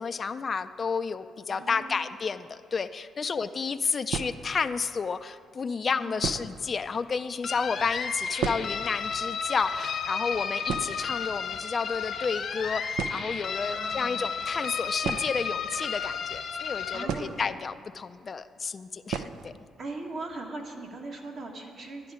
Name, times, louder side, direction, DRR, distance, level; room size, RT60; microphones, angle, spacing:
voice 1, 0.0-19.6, left 5 dB, 40° left, 10 dB, 0.3 m, -31 dB
voice 2, 1.5-2.1 3.2-3.4 5.9-6.4 13.6-14.3 16.9-17.4 19.8-22.1, right 2 dB, 60° right, 1 dB, 1.7 m, -40 dB
sound 1, 3.1-3.2 4.1-4.7 5.6-5.7 6.2-6.7 7.0-7.1 7.3-7.5 7.9-9.0 9.3-9.4 9.6-9.9 10.2-10.3 10.7-11.6 12.5-12.6 12.9-13.5 15.0-16.1 17.0-17.9 18.1-18.2 19.1-19.5 19.9-20.0 20.3-20.4 20.8-21.2, right 7 dB, 85° right, 0.5 m, -34 dB
sound 2, 7.4-17.0, left 6 dB, 60° left, 0.8 m, -33 dB
11.0 x 10.5 x 5.0 m, 2.2 s
cardioid pair, 90°, 0 cm